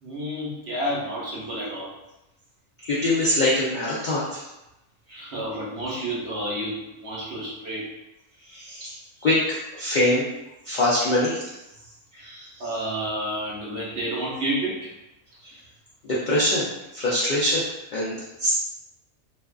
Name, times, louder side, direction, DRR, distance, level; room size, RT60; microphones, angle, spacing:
voice 1, 0.0-1.9 5.1-7.9 12.1-12.2 12.6-14.9, right 1 dB, 55° right, -6 dB, 0.9 m, -30 dB
voice 2, 2.8-4.4 5.1-5.3 5.9-6.0 8.5-10.3 10.6-11.6 12.2-12.5 15.4-15.6 16.0-16.7 16.9-18.5, left 1 dB, 75° left, -7 dB, 0.4 m, -24 dB
2.5 x 2.3 x 2.3 m, 0.93 s
omnidirectional pair, 1.4 m